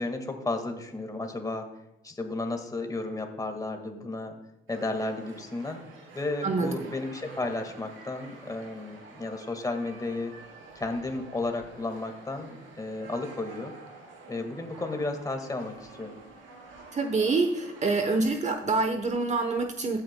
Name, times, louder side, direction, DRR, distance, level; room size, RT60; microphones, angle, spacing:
voice 1, 0.0-1.7 2.0-4.3 4.7-5.8 6.1-10.3 10.8-13.7 14.3-16.2, left 2 dB, 20° left, 5 dB, 1.7 m, -33 dB
sound 1, 4.7-18.2, right 3 dB, 85° right, 2.9 m, -49 dB
voice 2, 6.4-6.8 16.9-20.0, right 3 dB, 35° right, 6 dB, 1.0 m, -26 dB
15.0 x 9.0 x 2.2 m, 0.93 s
cardioid pair, 90°, 20 cm